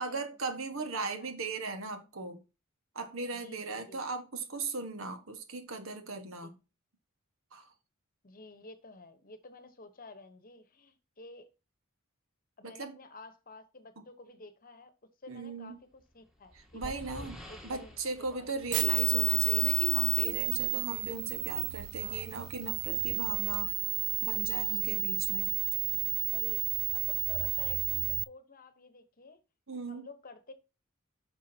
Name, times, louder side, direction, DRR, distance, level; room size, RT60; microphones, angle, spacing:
voice 1, 0.0-2.4 2.9-6.5 7.5-7.7 12.6-13.0 14.0-14.1 15.3-15.8 16.7-17.4 17.6-23.7 24.2-25.5 29.7-30.0, right 3 dB, 65° right, 1.5 m, -38 dB
voice 2, 0.7-1.3 3.3-4.0 6.4-6.5 8.2-11.5 12.6-14.9 15.2-18.0 18.3-18.5 22.0-22.3 26.3-29.4 29.9-30.5, left 2 dB, 40° left, 1.1 m, -51 dB
sound 1, 16.0-19.7, equal, 5° right, 1.7 m, -48 dB
sound 2, 18.7-28.2, right 18 dB, 90° right, 0.3 m, -31 dB
9.4 x 6.2 x 2.8 m
head